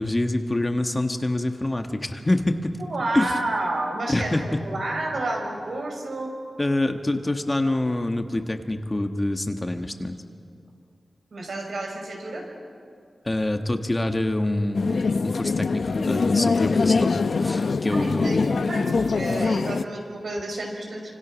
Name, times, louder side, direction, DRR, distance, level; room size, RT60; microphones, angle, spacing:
voice 1, 0.0-2.7 3.1-3.3 4.1-4.4 6.6-10.2 13.2-17.1 17.4-18.5, left 1 dB, 20° left, 6 dB, 1.5 m, -26 dB
voice 2, 2.9-4.4 4.6-6.4 11.3-12.5 17.9-21.1, right 2 dB, 70° right, 1 dB, 6.1 m, -30 dB
sound 1, 14.7-19.8, left 4 dB, 65° left, 0.7 m, -23 dB
29.0 x 26.5 x 6.3 m, 2.3 s
wide cardioid pair, 105°, 0 cm